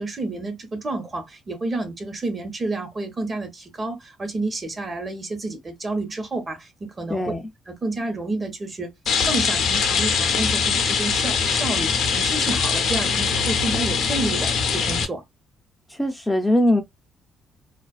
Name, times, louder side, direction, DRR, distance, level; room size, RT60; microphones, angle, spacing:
voice 1, 0.0-7.2 7.7-8.9 9.2-15.2, right 2 dB, 35° right, 1.0 m, -30 dB
voice 2, 7.1-7.4 15.9-16.8, left 1 dB, 10° left, 0.4 m, -21 dB
Rain, 9.1-15.0, left 6 dB, 75° left, 0.6 m, -22 dB
2.4 x 2.2 x 2.4 m
cardioid pair, 90°, 0 cm